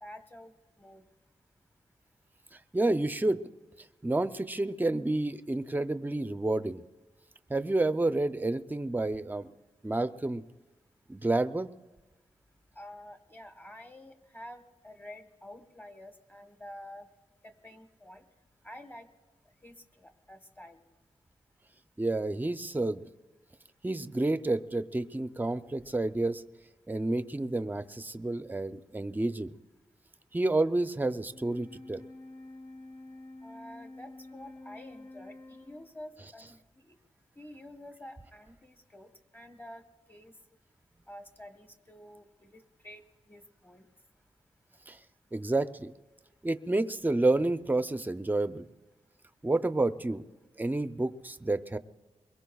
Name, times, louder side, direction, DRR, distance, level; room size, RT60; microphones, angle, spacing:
voice 1, 0.0-0.5 0.8-1.1 12.7-17.1 17.4-18.2 18.6-19.1 19.6-20.8 33.4-37.0 37.4-40.3 41.1-43.9, left 1 dB, 15° left, 7 dB, 1.2 m, -49 dB
voice 2, 2.7-3.4 4.0-6.8 7.5-9.5 9.8-10.4 11.1-11.7 22.0-23.0 23.8-26.4 26.9-29.5 30.3-32.0 44.9-45.0 45.3-45.9 46.4-48.7 49.4-50.2 50.6-51.8, right 2 dB, 15° right, 11 dB, 0.5 m, -29 dB
Wind instrument woodwind instrument, 31.2-36.0, left 2 dB, 45° left, 5.9 m, -48 dB
23.5 x 21.5 x 2.3 m, 1.2 s
wide cardioid pair, 115°, 13 cm